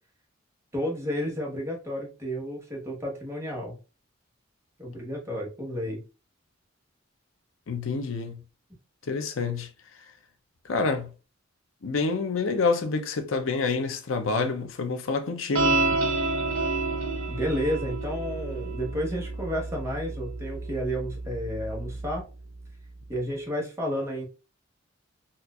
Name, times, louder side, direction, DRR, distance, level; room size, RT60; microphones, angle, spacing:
voice 1, 0.7-3.8 4.8-6.0 17.3-22.3 23.1-24.2, equal, 15° right, 1.1 m, -31 dB
voice 2, 7.7-8.4 9.1-9.7 10.6-11.1 11.8-15.8, left 4 dB, 70° left, 0.6 m, -27 dB
sound 1, 15.5-22.2, right 3 dB, 85° right, 0.9 m, -29 dB
4.2 x 2.5 x 2.3 m
head